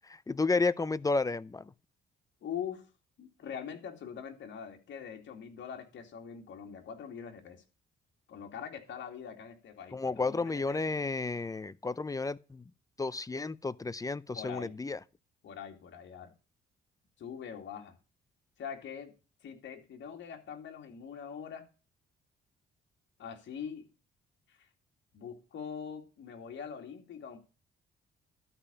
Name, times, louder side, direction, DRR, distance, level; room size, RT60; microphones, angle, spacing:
voice 1, 0.1-1.6 9.9-12.6 13.0-15.0, left 3 dB, 15° left, 0.6 m, -32 dB
voice 2, 2.4-2.9 3.2-7.6 8.3-11.0 14.3-14.7 15.4-16.3 17.2-18.0 18.6-19.1 19.4-21.7 23.2-23.9 24.5-24.7 25.1-27.4, left 7 dB, 70° left, 2.6 m, -43 dB
12.0 x 5.3 x 7.0 m
cardioid pair, 90°, 20 cm